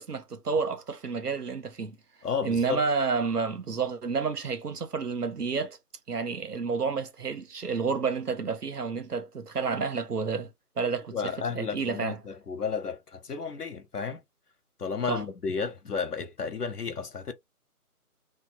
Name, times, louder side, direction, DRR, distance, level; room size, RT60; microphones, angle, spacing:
voice 1, 0.0-2.0 2.4-5.8 6.1-10.5 10.8-11.2 11.5-12.2 15.1-15.2, right 5 dB, 75° right, 1.0 m, -30 dB
voice 2, 2.2-2.8 11.1-14.2 14.8-17.3, left 5 dB, 85° left, 1.0 m, -32 dB
3.2 x 2.3 x 2.8 m
figure-of-eight pair, 160°, 46 cm